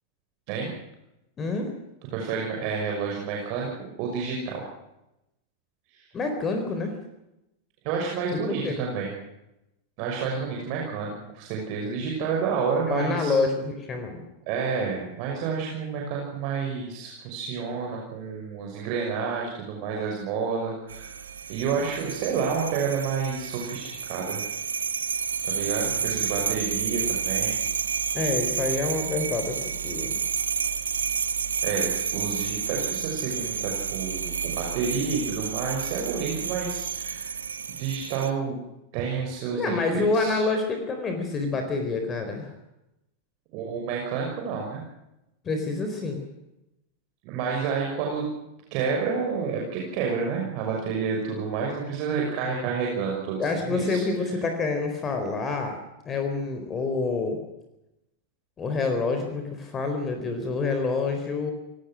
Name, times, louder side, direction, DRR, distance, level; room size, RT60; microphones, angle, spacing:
voice 1, 1.4-1.7 6.1-7.0 8.3-8.8 12.9-14.2 28.1-30.1 39.5-42.5 45.4-46.2 53.4-55.8 56.1-57.4 58.6-61.5, left 3 dB, 25° left, 6 dB, 4.1 m, -27 dB
voice 2, 2.1-3.7 4.0-4.6 7.8-9.1 10.0-13.4 14.5-21.1 21.5-24.4 25.4-27.6 31.6-37.3 37.7-38.6 38.9-40.4 43.5-44.8 47.2-48.2 48.7-54.0, right 5 dB, 45° right, 0 dB, 6.1 m, -29 dB
sound 1, 20.9-38.3, right 7 dB, 70° right, 1.3 m, -30 dB
28.0 x 18.5 x 6.3 m, 0.90 s
figure-of-eight pair, 90°, 0 cm